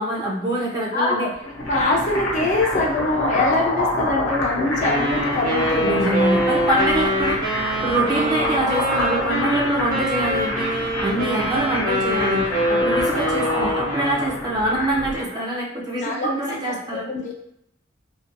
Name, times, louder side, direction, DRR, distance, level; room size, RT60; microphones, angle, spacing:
voice 1, 0.0-1.3 5.8-7.5 7.8-17.1, right 1 dB, 20° right, -4 dB, 0.5 m, -24 dB
voice 2, 0.9-1.3 1.7-6.1 15.3-15.4 16.0-16.3 17.0-17.4, left 2 dB, 40° left, -1 dB, 0.4 m, -23 dB
sound 1, 1.3-15.2, left 1 dB, 75° left, 0.7 m, -27 dB
Wind instrument woodwind instrument, 4.8-14.4, equal, 45° right, 1.0 m, -24 dB
2.4 x 2.3 x 2.6 m, 0.77 s
head